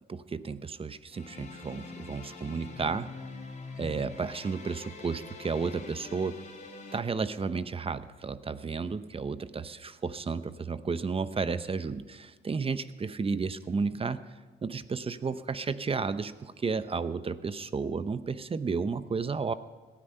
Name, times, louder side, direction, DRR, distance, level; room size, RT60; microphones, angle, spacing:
voice 1, 0.1-3.1 3.8-6.4 6.9-14.2 14.6-19.5, right 4 dB, 30° right, 13 dB, 0.7 m, -32 dB
sound 1, 1.1-7.0, left 4 dB, 40° left, 2.7 m, -44 dB
18.0 x 13.0 x 5.6 m, 1.4 s
cardioid pair, 90°, 20 cm